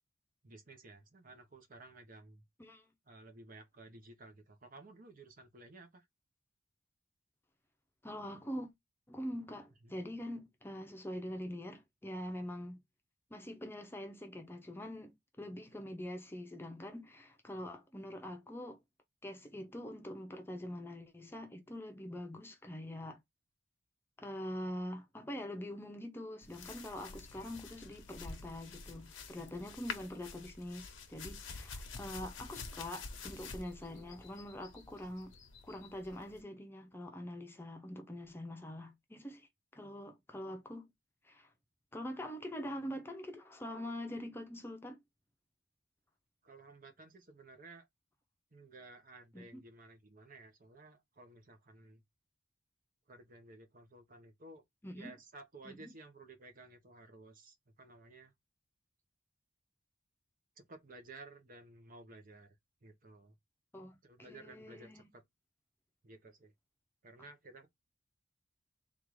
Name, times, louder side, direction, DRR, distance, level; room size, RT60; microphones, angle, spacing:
voice 1, 0.4-2.4 3.1-6.1 9.8-10.0 15.7-15.8 42.7-42.9 46.4-47.9 48.5-52.0 53.1-54.6 54.9-58.3 60.6-62.6 62.8-63.3 64.0-65.2 66.0-66.5 67.0-67.7, right 2 dB, 45° right, 0.9 m, -55 dB
voice 2, 2.6-2.9 8.0-8.7 9.1-12.8 13.3-18.8 19.2-23.2 24.2-35.3 35.6-40.9 41.2-41.5 41.9-45.0 49.3-49.6 54.8-55.1 55.6-55.9 63.7-65.1, left 1 dB, 10° left, 0.7 m, -44 dB
sound 1, 26.4-36.4, left 4 dB, 90° left, 0.9 m, -48 dB
3.7 x 2.5 x 4.6 m
head